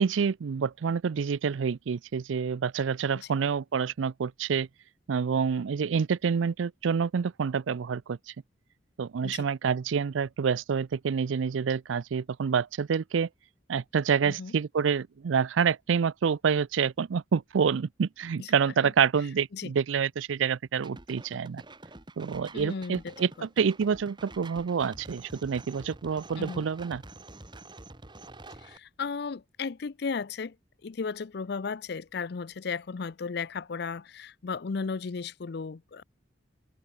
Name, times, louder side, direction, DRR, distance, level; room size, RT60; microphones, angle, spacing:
voice 1, 0.0-4.7 5.1-8.3 9.0-13.3 13.7-21.6 22.2-27.0, right 6 dB, 85° right, 0.4 m, -27 dB
voice 2, 14.2-14.5 18.4-18.5 18.8-18.9 19.5-19.7 22.5-23.2 26.4-26.7 28.6-30.6 30.8-36.0, left 5 dB, 60° left, 0.5 m, -35 dB
sound 1, 20.8-28.8, right 2 dB, 25° right, 2.0 m, -47 dB
open air
head